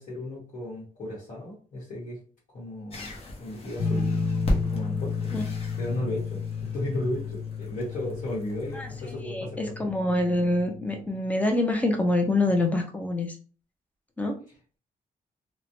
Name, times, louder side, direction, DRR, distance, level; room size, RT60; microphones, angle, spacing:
voice 1, 0.0-2.2 2.5-3.1 3.4-5.3 5.8-9.7, left 1 dB, 65° left, -8 dB, 1.1 m, -35 dB
sound 1, 2.9-9.2, left 1 dB, 45° left, 0.7 m, -36 dB
sound 2, 3.8-11.0, left 5 dB, 85° left, 0.6 m, -32 dB
voice 2, 9.2-13.3 14.2-14.4, left 2 dB, 10° left, 3 dB, 0.5 m, -25 dB
3.0 x 2.1 x 2.6 m, 0.40 s
wide cardioid pair, 165°, 15 cm